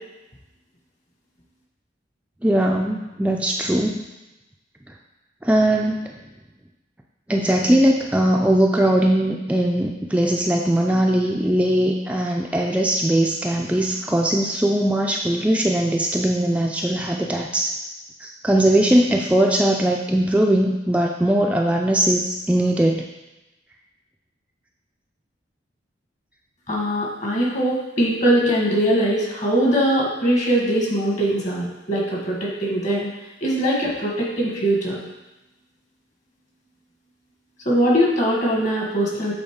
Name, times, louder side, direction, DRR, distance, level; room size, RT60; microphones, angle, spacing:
voice 1, 2.4-4.0 5.4-6.2 7.3-17.7 18.2-23.1, right 1 dB, 10° right, 0 dB, 0.3 m, -20 dB
voice 2, 26.7-33.1 33.4-35.0 37.6-39.3, equal, 40° left, -3 dB, 1.5 m, -21 dB
7.7 x 4.0 x 3.6 m, 1.0 s
head